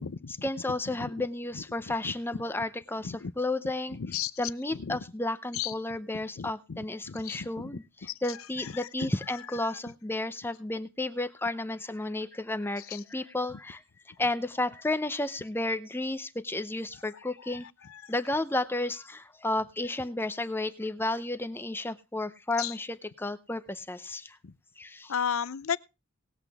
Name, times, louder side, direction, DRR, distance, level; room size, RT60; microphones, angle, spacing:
voice 1, 0.3-13.8 14.2-17.7 18.1-24.4 24.8-25.3, left 2 dB, 10° left, 0.6 m, -32 dB
voice 2, 25.1-25.8, left 8 dB, 90° left, 0.6 m, -30 dB
19.0 x 8.1 x 3.5 m
head